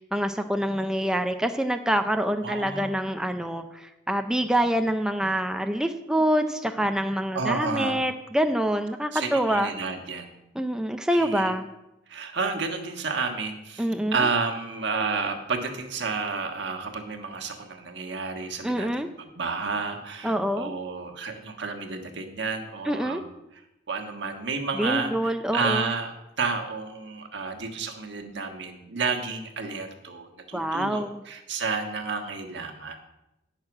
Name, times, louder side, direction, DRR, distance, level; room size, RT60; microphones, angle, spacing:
voice 1, 0.1-9.7 10.6-11.7 13.8-14.2 18.6-19.1 20.2-20.7 22.9-23.2 24.8-25.9 30.5-31.2, equal, 5° right, 6 dB, 0.4 m, -26 dB
voice 2, 2.4-2.9 7.3-8.0 9.1-10.3 11.1-11.6 12.1-23.2 23.5-33.0, right 4 dB, 70° right, 4 dB, 1.4 m, -31 dB
9.7 x 6.5 x 6.1 m, 0.90 s
head